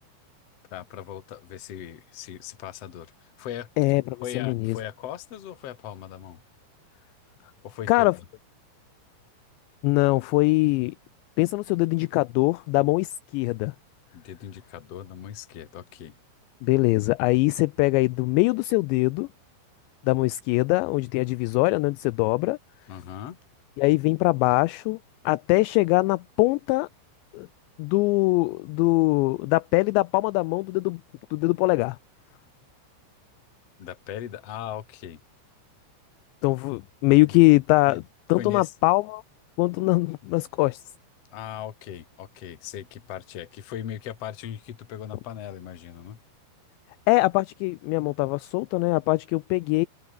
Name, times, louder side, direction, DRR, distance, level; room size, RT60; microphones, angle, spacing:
voice 1, 0.7-3.7 4.2-6.4 7.6-8.1 14.1-16.1 22.9-23.4 33.8-35.2 37.3-38.0 38.4-38.7 41.3-46.2, left 10 dB, 50° left, 1.9 m, -38 dB
voice 2, 3.8-4.8 7.9-8.2 9.8-11.0 11.4-13.7 16.6-19.3 20.0-22.6 23.8-25.0 25.3-26.9 27.3-27.5 27.8-31.0 31.3-32.0 36.4-38.0 38.3-39.2 39.6-40.8 47.1-49.9, left 23 dB, 85° left, 2.5 m, -22 dB
omnidirectional pair, 5.6 m